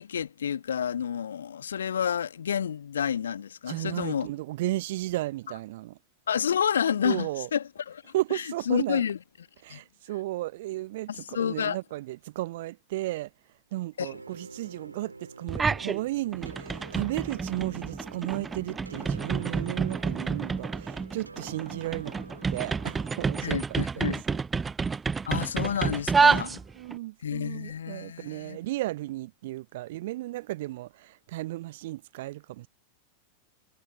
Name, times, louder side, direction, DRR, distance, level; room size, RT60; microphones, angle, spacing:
voice 1, 0.0-4.3 6.3-8.0 8.3-9.2 9.7-9.8 11.1-11.8 14.0-14.2 23.4-24.2 25.3-26.6 27.2-28.6, left 8 dB, 65° left, 1.9 m, -29 dB
voice 2, 3.7-6.0 7.0-7.5 8.1-9.1 9.6-13.3 13.7-22.2 22.5-24.4 26.4-32.7, right 17 dB, 55° right, 0.9 m, -34 dB
sound 1, 14.1-23.7, right 3 dB, 80° right, 5.4 m, -47 dB
sound 2, 15.5-16.0 16.3-27.0, right 5 dB, 15° right, 0.3 m, -29 dB
figure-of-eight pair, 90°, 0 cm